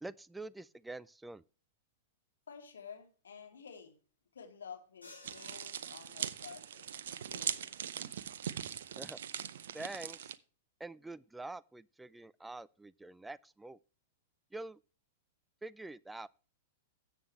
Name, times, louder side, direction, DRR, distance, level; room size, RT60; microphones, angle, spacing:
voice 1, 0.0-1.4 9.0-9.2 9.7-10.3 10.8-13.8 14.5-14.8 15.6-16.3, right 2 dB, 5° right, 0.4 m, -46 dB
voice 2, 2.5-4.0 4.3-7.7, left 6 dB, 65° left, 2.8 m, -51 dB
sound 1, 5.0-6.8, left 2 dB, 85° left, 4.6 m, -57 dB
sound 2, 5.2-10.3, right 9 dB, 60° right, 0.7 m, -41 dB
13.5 x 8.0 x 3.2 m
figure-of-eight pair, 100°, 0 cm